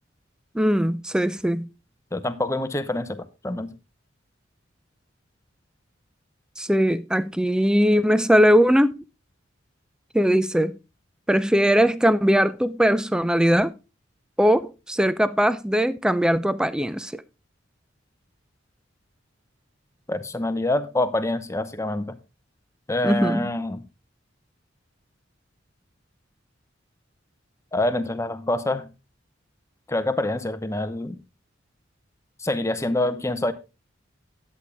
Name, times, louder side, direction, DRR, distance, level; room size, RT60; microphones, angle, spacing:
voice 1, 0.5-1.7 6.6-8.9 10.1-10.7 11.3-13.7 14.4-17.2 23.0-23.5, equal, 5° right, 0.4 m, -20 dB
voice 2, 2.1-3.7 20.1-22.2 22.9-23.8 27.7-28.9 29.9-31.2 32.4-33.5, left 1 dB, 15° left, 0.8 m, -26 dB
10.5 x 8.3 x 3.5 m
head